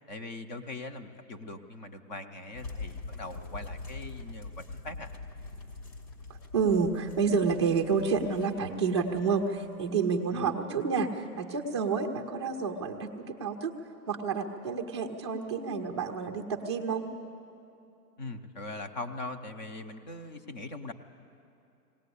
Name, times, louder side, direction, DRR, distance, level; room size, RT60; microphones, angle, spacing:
voice 1, 0.1-4.5 4.8-5.1 10.3-10.5 18.2-20.9, left 2 dB, 25° left, 8 dB, 0.7 m, -41 dB
sound 1, 2.5-10.2, left 3 dB, 80° left, 2.9 m, -44 dB
voice 2, 6.5-13.7 14.1-17.1, right 5 dB, 20° right, 2 dB, 0.5 m, -29 dB
20.0 x 18.5 x 8.4 m, 2.7 s
hypercardioid pair, 160°, 49 cm